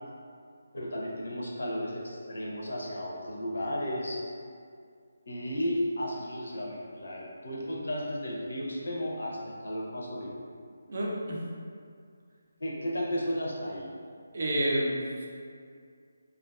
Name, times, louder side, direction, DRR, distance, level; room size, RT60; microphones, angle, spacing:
voice 1, 0.7-4.2 5.3-10.4 12.6-13.9, equal, 90° left, -3 dB, 0.6 m, -34 dB
voice 2, 10.9-11.4 14.3-15.3, right 1 dB, 50° right, -3 dB, 0.4 m, -29 dB
2.4 x 2.3 x 2.2 m, 2.2 s
hypercardioid pair, 175°, 0 cm